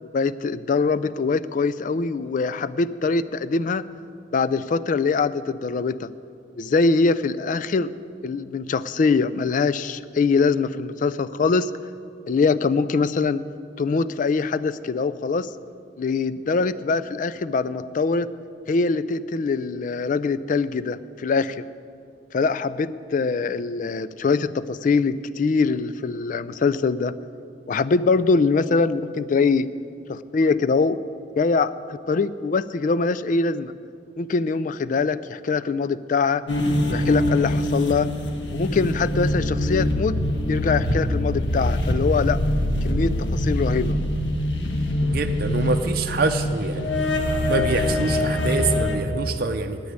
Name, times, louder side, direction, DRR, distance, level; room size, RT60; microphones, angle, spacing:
voice 1, 0.0-3.8 4.3-6.1 6.6-7.9 8.2-11.7 12.3-13.4 13.8-15.5 16.0-18.3 18.7-21.6 22.3-27.1 27.7-29.7 30.1-31.0 31.4-33.7 34.2-36.4 36.9-38.1 38.5-40.2 40.5-42.4 42.8-44.0, left 4 dB, 45° left, 15 dB, 0.3 m, -23 dB
sound 1, 36.5-49.0, left 1 dB, 85° left, 1.3 m, -24 dB
voice 2, 45.0-46.9 47.5-49.8, right 3 dB, 55° right, 5 dB, 0.6 m, -25 dB
9.4 x 8.5 x 9.5 m, 2.4 s
head